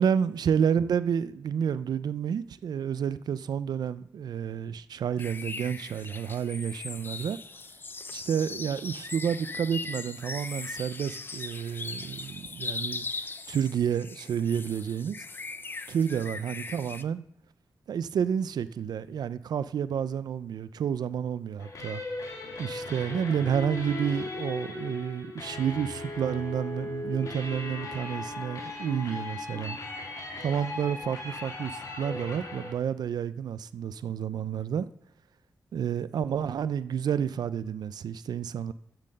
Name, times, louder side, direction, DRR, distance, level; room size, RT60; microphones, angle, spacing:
voice 1, 0.0-7.4 8.1-13.1 13.5-15.2 15.9-17.2 17.9-22.0 22.6-29.8 30.4-34.9 35.7-38.7, right 8 dB, 85° right, 0.4 m, -30 dB
sound 1, 5.2-17.0, left 3 dB, 30° left, 0.5 m, -39 dB
sound 2, 21.6-32.7, left 2 dB, 60° left, 2.4 m, -38 dB
7.7 x 7.2 x 6.5 m
wide cardioid pair, 120°, 7 cm